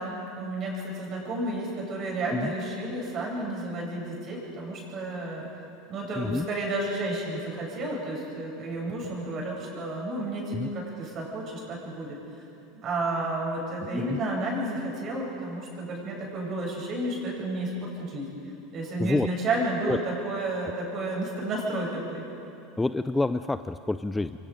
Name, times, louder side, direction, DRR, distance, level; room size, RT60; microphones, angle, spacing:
voice 1, 0.0-5.5 5.9-12.2 12.7-18.3 18.7-22.2, right 2 dB, 40° right, -2 dB, 7.9 m, -31 dB
voice 2, 6.2-6.5 10.5-10.7 13.8-14.2 19.0-19.3 19.9-20.0 22.8-24.5, left 2 dB, 10° left, 11 dB, 0.4 m, -28 dB
28.5 x 24.0 x 5.3 m, 2.7 s
supercardioid pair, 125°, 0 cm